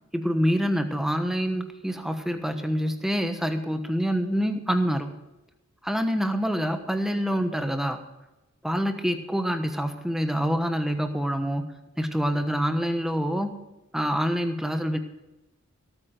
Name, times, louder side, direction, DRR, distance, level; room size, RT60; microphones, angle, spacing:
voice 1, 0.1-5.2 5.8-8.0 8.6-13.5 13.9-15.0, equal, ahead, 7 dB, 1.1 m, -26 dB
17.5 x 9.0 x 5.1 m, 1.0 s
head